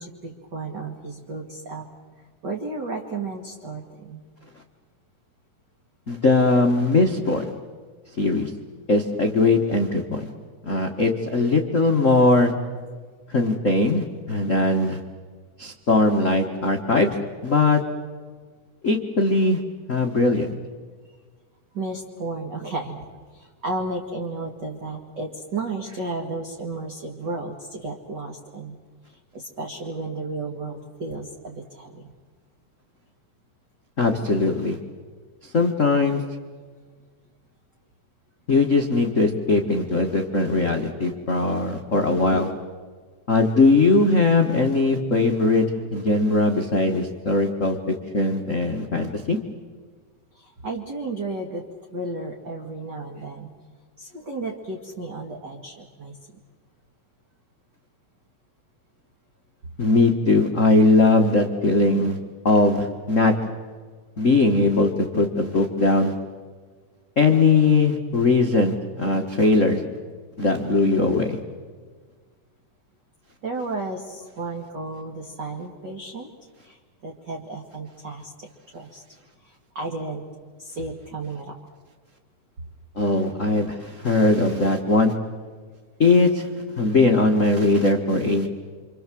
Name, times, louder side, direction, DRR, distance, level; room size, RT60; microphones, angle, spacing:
voice 1, 0.0-1.9 2.4-4.2 21.0-21.2 21.7-28.8 29.1-32.1 50.3-53.5 54.0-56.2 73.4-76.3 76.6-78.5 78.7-79.0 79.4-80.2 80.6-81.6, right 3 dB, 35° right, 1 dB, 2.3 m, -33 dB
voice 2, 6.1-7.5 8.2-8.5 8.9-10.3 10.6-12.5 13.3-15.0 15.6-17.1 17.4-17.8 18.8-19.6 19.9-20.5 34.0-34.8 35.5-36.2 38.5-42.5 43.3-45.6 45.9-49.4 59.8-62.2 62.4-63.3 64.2-66.1 67.2-69.8 70.4-71.4 83.0-85.1 86.0-86.5 86.8-88.5, left 3 dB, 40° left, 2 dB, 1.1 m, -20 dB
28.0 x 26.0 x 7.6 m, 1.5 s
omnidirectional pair, 3.7 m